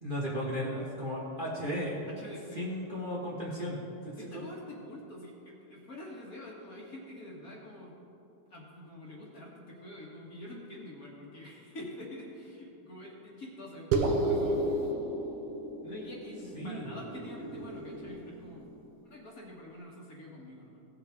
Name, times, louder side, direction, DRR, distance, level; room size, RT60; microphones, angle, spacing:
voice 1, 0.0-2.0 2.5-4.4 16.5-16.9, equal, 30° right, -6 dB, 1.3 m, -35 dB
voice 2, 2.1-2.7 4.1-8.0 8.5-14.8 15.8-18.7 19.0-20.8, left 1 dB, 45° left, -3 dB, 1.7 m, -46 dB
sound 1, 13.9-18.7, right 2 dB, 75° right, 1.8 m, -32 dB
17.0 x 7.5 x 3.5 m, 2.8 s
omnidirectional pair, 2.4 m